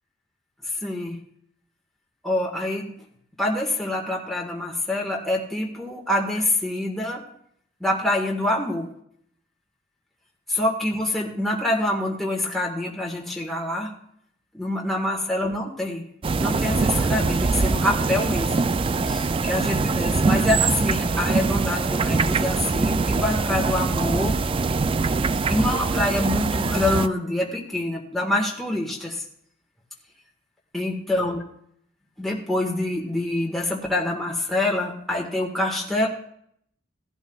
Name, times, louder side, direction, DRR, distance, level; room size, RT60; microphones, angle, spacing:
voice 1, 0.7-1.2 2.2-2.9 3.4-7.2 7.8-8.9 10.5-13.9 14.5-16.0 16.4-18.7 19.0-24.4 25.5-29.2 30.7-31.4 32.2-36.1, left 1 dB, ahead, -2 dB, 1.5 m, -26 dB
sound 1, 16.2-27.1, right 4 dB, 25° right, 0.3 m, -23 dB
17.5 x 11.5 x 2.3 m, 0.68 s
head